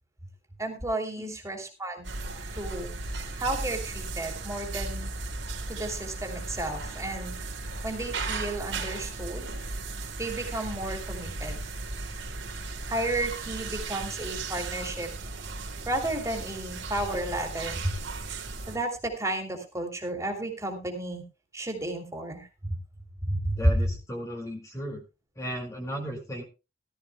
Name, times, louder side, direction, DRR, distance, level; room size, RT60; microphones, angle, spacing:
voice 1, 0.6-2.1 2.5-2.9 3.4-5.1 5.7-7.4 7.8-9.5 10.2-11.6 12.9-15.1 15.9-18.0 18.7-21.2 21.5-22.8 23.3-23.7, right 1 dB, 15° right, 3 dB, 2.9 m, -32 dB
sound 1, 2.0-18.8, right 3 dB, 65° right, 3.3 m, -36 dB
voice 2, 23.6-25.0 25.4-26.4, equal, 15° left, 1 dB, 2.2 m, -35 dB
18.5 x 13.0 x 2.2 m, 0.28 s
head